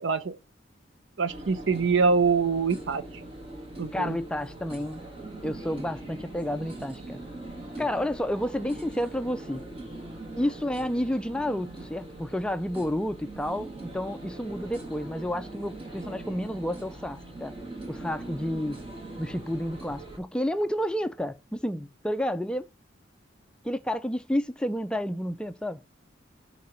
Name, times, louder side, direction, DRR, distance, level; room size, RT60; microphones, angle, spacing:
voice 1, 0.0-0.4 1.2-3.0 3.8-4.2, right 5 dB, 70° right, 0.7 m, -24 dB
sound 1, 1.3-20.2, right 2 dB, 30° right, 1.9 m, -41 dB
voice 2, 3.9-5.0 5.4-7.2 7.8-9.6 10.4-17.5 17.9-18.8 19.2-22.7 23.6-25.8, equal, 5° left, 0.4 m, -30 dB
5.8 x 4.2 x 6.2 m
head